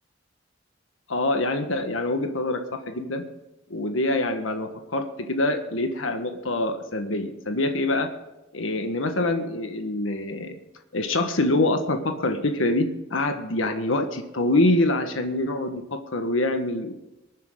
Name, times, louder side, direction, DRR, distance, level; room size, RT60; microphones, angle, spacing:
voice 1, 1.1-3.2 3.7-8.1 8.5-10.6 10.9-16.9, left 2 dB, 85° left, 6 dB, 1.5 m, -25 dB
24.0 x 9.4 x 3.8 m, 0.99 s
head